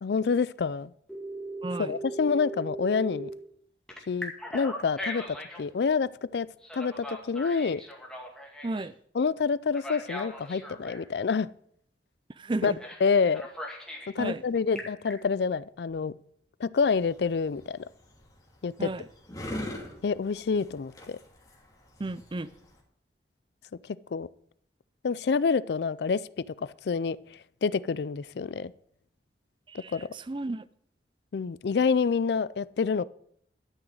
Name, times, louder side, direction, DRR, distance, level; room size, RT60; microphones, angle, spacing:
voice 1, 0.0-0.9 1.8-3.3 4.1-6.5 6.7-7.8 9.1-11.5 12.6-12.7 13.0-13.4 14.2-16.1 16.6-17.8 18.6-18.9 20.0-21.2 24.1-24.3 25.0-26.2 26.9-27.2 27.6-28.7 29.9-30.1 31.3-33.0, left 5 dB, 65° left, 0.4 m, -27 dB
Telephone, 1.1-3.3 3.9-5.6 6.6-8.9 9.7-11.0 12.8-13.0 13.3-14.1 14.6-15.1, equal, 5° left, 2.2 m, -39 dB
voice 2, 1.6-1.9 8.6-8.9 12.4-12.8 14.2-14.4 18.8-19.0 22.0-22.5 29.7-30.6, right 2 dB, 25° right, 0.4 m, -33 dB
sound 1, 16.7-22.8, left 1 dB, 20° left, 2.4 m, -42 dB
12.0 x 6.2 x 7.8 m
head